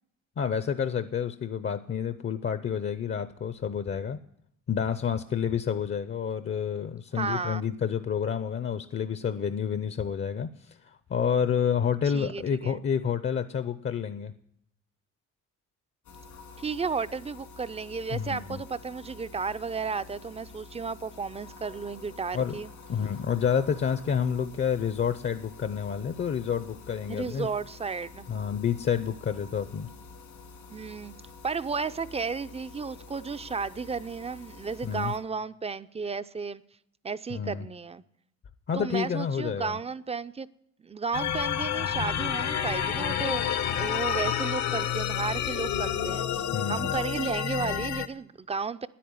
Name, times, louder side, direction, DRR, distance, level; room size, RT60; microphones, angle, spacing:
voice 1, 0.4-4.2 4.7-14.3 18.1-18.6 22.3-22.5 22.9-27.5 28.3-29.9 34.8-35.1 37.3-37.7 38.7-39.8 46.5-47.0, left 7 dB, 40° left, 12 dB, 0.6 m, -29 dB
voice 2, 7.2-7.7 12.0-12.8 16.6-22.7 27.1-28.3 30.7-31.1 31.4-36.6 37.0-38.0 38.7-40.5 40.8-48.9, right 5 dB, 20° right, 15 dB, 0.5 m, -33 dB
sound 1, 16.0-35.2, left 4 dB, 80° left, 2.4 m, -48 dB
sound 2, 41.1-48.1, left 9 dB, 65° left, 0.9 m, -29 dB
9.9 x 8.5 x 9.5 m, 0.73 s
cardioid pair, 90°, 30 cm